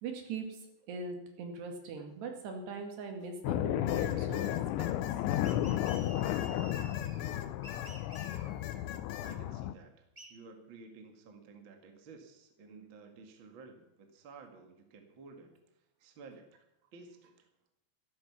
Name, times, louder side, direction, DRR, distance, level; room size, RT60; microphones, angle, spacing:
voice 1, 0.0-0.6 0.9-4.9, right 4 dB, 70° right, 3 dB, 4.2 m, -41 dB
sound 1, 3.4-9.7, left 13 dB, 90° left, 3.0 m, -33 dB
sound 2, 3.9-7.9 8.2-9.4, left 10 dB, 70° left, 2.9 m, -45 dB
sound 3, 5.4-7.3 7.6-8.8 10.2-10.3, right 1 dB, 15° right, 1.1 m, -51 dB
voice 2, 9.2-16.6 16.9-17.5, right 4 dB, 45° right, 4 dB, 1.6 m, -53 dB
13.5 x 12.5 x 6.0 m, 0.84 s
omnidirectional pair, 5.2 m